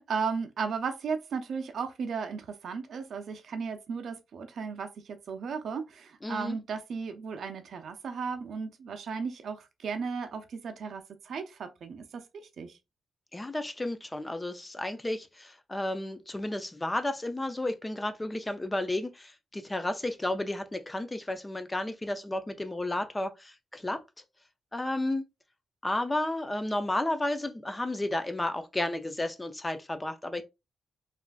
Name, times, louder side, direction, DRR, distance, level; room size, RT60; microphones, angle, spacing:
voice 1, 0.0-12.2 12.6-12.8, right 5 dB, 65° right, 0.5 m, -35 dB
voice 2, 6.2-6.6 13.3-24.0 24.7-25.2 25.8-30.4, left 1 dB, 15° left, 0.4 m, -32 dB
3.4 x 2.5 x 2.2 m
cardioid pair, 105°, 0 cm